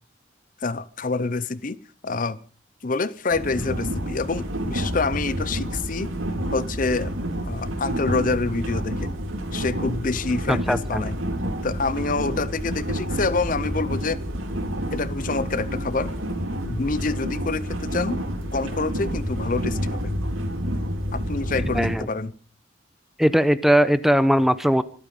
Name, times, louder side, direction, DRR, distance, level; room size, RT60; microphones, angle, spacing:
voice 1, 0.6-2.4 2.8-6.1 6.5-7.1 7.4-9.1 9.5-11.2 11.6-14.2 14.9-16.1 16.6-18.2 18.5-20.1 21.1-22.3, left 3 dB, 40° left, 0.7 m, -27 dB
sound 1, 3.3-22.0, equal, 90° right, 4.2 m, -29 dB
voice 2, 10.5-11.0 21.7-22.1 23.2-24.8, equal, ahead, 0.7 m, -19 dB
25.5 x 9.1 x 5.5 m
head